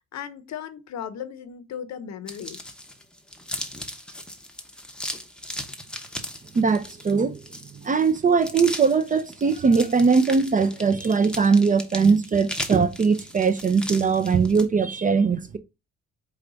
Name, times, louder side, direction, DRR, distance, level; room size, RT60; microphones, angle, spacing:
voice 1, 0.0-2.6, left 8 dB, 65° left, 0.7 m, -36 dB
sound 1, 2.3-14.6, left 1 dB, 5° left, 0.7 m, -37 dB
voice 2, 6.5-7.4 7.8-15.6, right 5 dB, 25° right, 0.4 m, -20 dB
4.8 x 2.3 x 3.8 m
cardioid pair, 90°, 30 cm